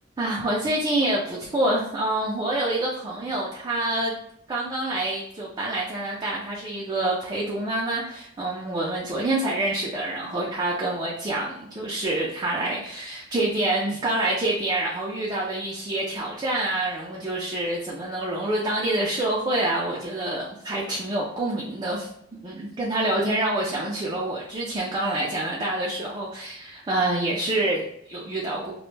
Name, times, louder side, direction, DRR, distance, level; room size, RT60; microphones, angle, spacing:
voice 1, 0.2-4.1 4.5-28.7, right 1 dB, 25° right, -4 dB, 0.3 m, -27 dB
2.1 x 2.0 x 3.1 m, 0.73 s
head